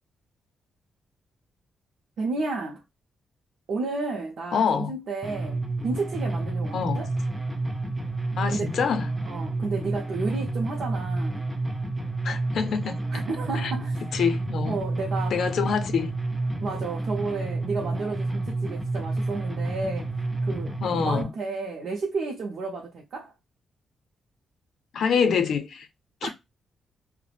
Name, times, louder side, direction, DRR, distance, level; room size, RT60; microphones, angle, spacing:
voice 1, 2.2-2.8 3.7-7.1 8.5-8.8 9.3-11.5 13.1-14.0 14.6-15.6 16.6-20.1 20.4-20.8 21.0-23.3 26.2-26.3, right 3 dB, 60° right, 0.5 m, -32 dB
voice 2, 4.5-4.9 6.7-7.0 8.4-9.1 12.2-13.1 13.5-13.7 14.1-14.8 15.3-16.1 20.8-21.3 24.9-25.9 26.2-26.3, left 6 dB, 65° left, 0.5 m, -26 dB
sound 1, 5.2-21.2, right 2 dB, 10° right, 0.3 m, -30 dB
2.4 x 2.0 x 3.1 m
wide cardioid pair, 150°, 0 cm